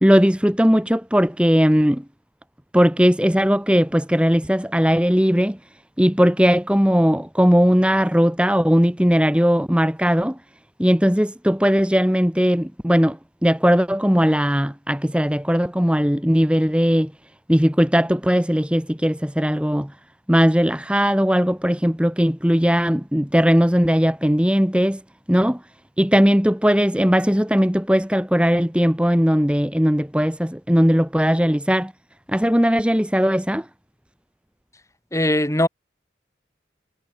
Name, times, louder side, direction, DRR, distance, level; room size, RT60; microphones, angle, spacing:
voice 1, 0.0-2.0 2.7-5.6 6.0-10.4 10.8-17.1 17.5-19.9 20.3-25.0 25.3-25.6 26.0-31.9 32.3-33.7, equal, 5° right, 1.6 m, -18 dB
voice 2, 35.1-35.7, left 1 dB, 15° left, 3.5 m, -19 dB
head